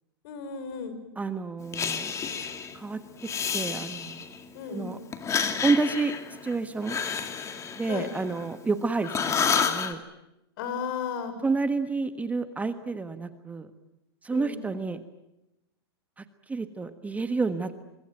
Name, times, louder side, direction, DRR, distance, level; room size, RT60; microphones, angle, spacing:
voice 1, 0.2-1.0 4.5-5.0 7.9-8.1 10.6-11.3 14.3-14.6, left 6 dB, 60° left, 10 dB, 5.7 m, -34 dB
voice 2, 1.2-2.1 2.7-3.0 3.5-4.3 4.7-5.0 5.6-6.1 6.4-7.0 7.8-9.3 9.6-10.0 11.4-13.7 14.2-15.0 16.2-17.8, right 4 dB, 10° right, 10 dB, 1.4 m, -29 dB
Breathing, 1.7-2.8 3.2-4.4 5.1-8.7 9.0-9.9, left 6 dB, 20° left, 2.4 m, -30 dB
25.5 x 23.0 x 9.1 m, 0.90 s
hypercardioid pair, 125°, 13 cm